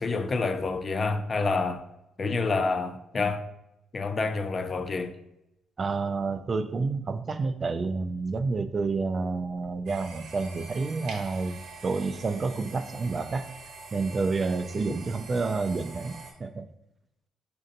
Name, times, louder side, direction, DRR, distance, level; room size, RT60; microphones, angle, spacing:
voice 1, 0.0-1.9 2.2-3.4 3.9-5.1, left 3 dB, 40° left, 0.4 m, -28 dB
voice 2, 5.8-13.5 13.9-16.7, right 4 dB, 35° right, 0.3 m, -29 dB
sound 1, 9.9-16.3, right 4 dB, 90° right, 0.8 m, -45 dB
6.2 x 2.6 x 2.6 m
cardioid pair, 90°, 0 cm